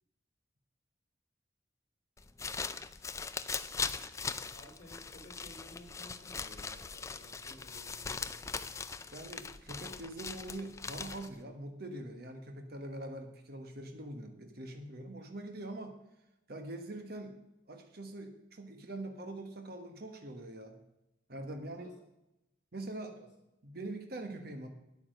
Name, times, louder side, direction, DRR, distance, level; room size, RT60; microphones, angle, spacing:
sound 1, 2.2-11.4, left 5 dB, 15° left, 0.3 m, -40 dB
voice 1, 4.5-8.7 21.8-21.9 23.2-23.3, left 1 dB, 40° left, -3 dB, 3.9 m, -55 dB
voice 2, 9.1-16.0 16.5-17.4 17.7-20.8 21.3-21.9 22.7-23.2 23.6-24.7, right 1 dB, 50° right, 5 dB, 1.2 m, -43 dB
9.8 x 9.0 x 6.5 m, 0.91 s
head